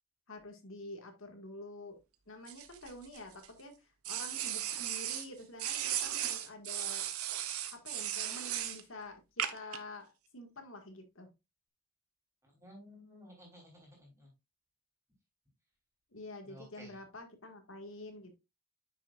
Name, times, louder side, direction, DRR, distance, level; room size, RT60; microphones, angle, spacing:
voice 1, 0.3-2.0 2.3-7.1 7.7-11.3 16.1-18.3, left 2 dB, 65° left, 5 dB, 1.8 m, -48 dB
sound 1, 2.5-3.5 4.0-5.3 5.6-8.8 9.4-9.8, right 11 dB, 80° right, 0.9 m, -36 dB
voice 2, 12.6-14.3 16.4-16.9, equal, 15° right, -2 dB, 3.3 m, -54 dB
9.8 x 6.1 x 2.4 m, 0.23 s
head